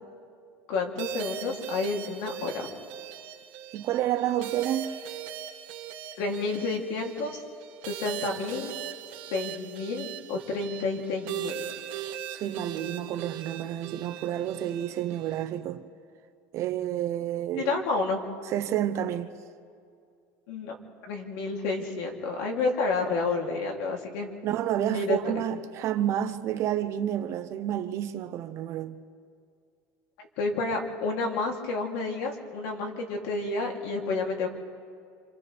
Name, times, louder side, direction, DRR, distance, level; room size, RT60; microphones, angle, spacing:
voice 1, 0.7-2.7 6.2-7.4 7.9-8.7 9.3-11.6 17.6-18.2 20.5-20.7 21.0-24.3 24.8-25.4 30.2-34.5, left 3 dB, 70° left, 3.0 m, -30 dB
sound 1, 1.0-15.4, right 10 dB, 65° right, 1.9 m, -39 dB
voice 2, 3.7-5.0 11.9-15.8 16.5-17.8 18.5-19.3 24.4-29.0, right 11 dB, 45° right, 0.8 m, -30 dB
29.0 x 26.5 x 3.5 m
cardioid pair, 155°, 7 cm